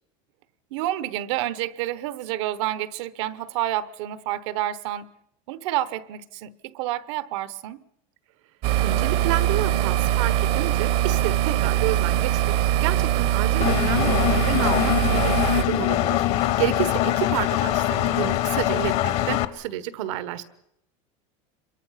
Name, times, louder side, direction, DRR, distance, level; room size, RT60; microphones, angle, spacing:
voice 1, 0.7-5.1 5.5-7.8 9.7-9.8 12.1-12.2 15.1-15.3 16.6-16.9, right 13 dB, 65° right, 1.0 m, -29 dB
sound 1, 8.6-15.6, right 12 dB, 40° right, 0.8 m, -22 dB
voice 2, 8.8-12.5 12.8-20.4, right 12 dB, 85° right, 1.5 m, -30 dB
Engine, 13.6-19.5, left 14 dB, 40° left, 0.9 m, -23 dB
26.5 x 23.0 x 5.8 m
cardioid pair, 175°, 16 cm